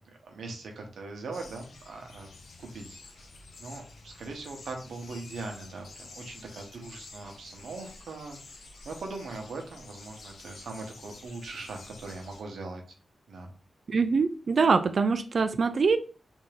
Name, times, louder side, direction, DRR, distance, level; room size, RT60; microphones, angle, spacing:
voice 1, 0.2-2.3 2.6-3.3 3.6-12.8 13.3-13.5, right 3 dB, 90° right, 2 dB, 0.9 m, -41 dB
sound 1, 1.3-12.4, left 3 dB, 65° left, 0.6 m, -50 dB
voice 2, 13.9-16.0, right 4 dB, 55° right, 10 dB, 0.3 m, -24 dB
3.5 x 2.6 x 3.3 m, 0.37 s
wide cardioid pair, 115°, 0 cm